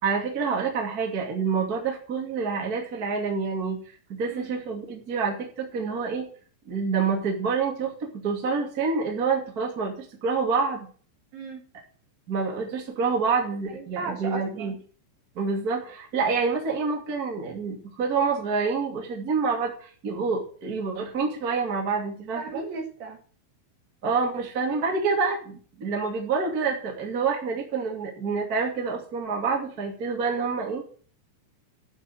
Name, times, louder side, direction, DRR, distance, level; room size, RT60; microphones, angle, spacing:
voice 1, 0.0-3.8 4.1-6.2 6.6-10.9 12.3-14.7 15.3-22.6 24.0-30.8, right 5 dB, 30° right, 0 dB, 1.7 m, -27 dB
voice 2, 11.3-11.7 13.7-14.8 22.3-23.2, right 4 dB, 55° right, 2 dB, 3.2 m, -36 dB
12.0 x 5.4 x 8.6 m, 0.43 s
omnidirectional pair, 5.9 m